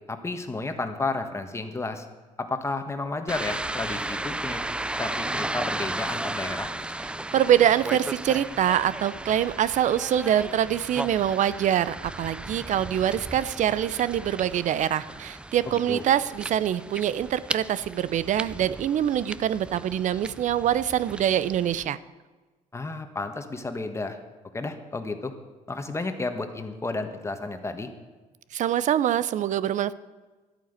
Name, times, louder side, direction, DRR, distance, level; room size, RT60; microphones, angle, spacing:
voice 1, 0.1-2.0 2.4-4.6 5.0-6.7 15.7-16.0 22.7-24.2 24.5-25.3 25.7-27.9, left 3 dB, 20° left, 7 dB, 1.5 m, -32 dB
sound 1, 3.3-21.9, right 1 dB, 5° right, 0.4 m, -35 dB
voice 2, 7.3-22.0 28.5-29.9, right 10 dB, 55° right, 16 dB, 0.6 m, -24 dB
12.5 x 9.3 x 8.1 m, 1.3 s
cardioid pair, 105°, 15 cm